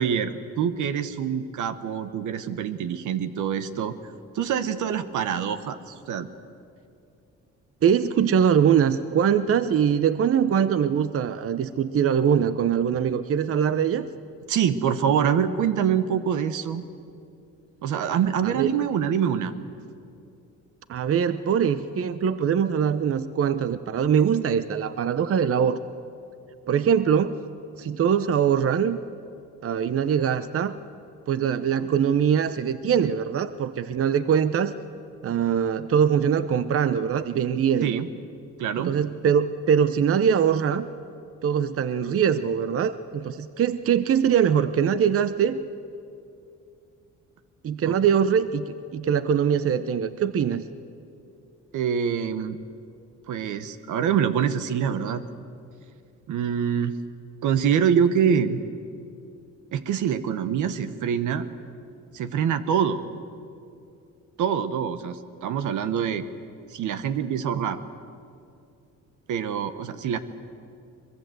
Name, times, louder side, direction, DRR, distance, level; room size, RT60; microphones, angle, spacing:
voice 1, 0.0-4.0 4.3-6.3 14.5-16.8 17.8-19.5 37.8-38.1 38.6-38.9 47.8-48.0 51.7-52.6 53.3-55.2 56.3-56.9 57.4-58.6 59.7-61.5 62.1-63.0 64.4-66.3 66.7-67.8 69.3-70.2, right 8 dB, 80° right, 11 dB, 1.3 m, -25 dB
voice 2, 7.8-14.1 18.4-18.7 20.9-25.8 26.7-27.4 27.8-29.0 29.6-30.8 31.3-34.7 35.2-38.0 38.8-40.9 41.4-45.6 47.6-50.6 67.5-67.6, right 8 dB, 50° right, 13 dB, 0.8 m, -22 dB
23.0 x 22.0 x 7.8 m, 2.5 s
cardioid pair, 90°, 30 cm